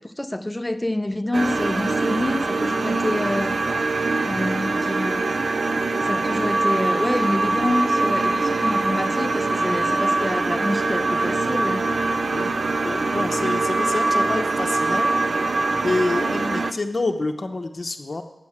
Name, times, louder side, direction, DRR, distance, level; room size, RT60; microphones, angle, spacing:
voice 1, 0.0-3.6 4.2-5.4 6.0-11.9, left 1 dB, 10° left, 0.5 m, -27 dB
sound 1, 1.3-16.7, right 3 dB, 60° right, 0.5 m, -23 dB
voice 2, 12.8-15.2 15.8-18.2, left 2 dB, 45° left, 0.8 m, -27 dB
8.7 x 6.2 x 7.3 m
wide cardioid pair, 70°, 0 cm